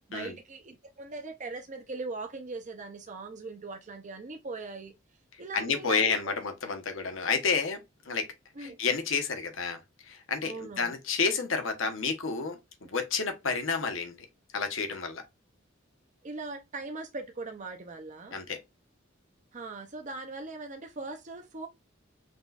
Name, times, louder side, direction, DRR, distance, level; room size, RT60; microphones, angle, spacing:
voice 1, 0.1-4.9 5.4-6.4 8.6-8.8 10.4-10.9 16.2-18.4 19.5-21.7, right 3 dB, 40° right, 0.6 m, -40 dB
voice 2, 5.5-8.3 8.6-14.2 14.5-15.2 18.3-18.6, left 5 dB, 70° left, 1.1 m, -30 dB
5.2 x 3.1 x 2.4 m
head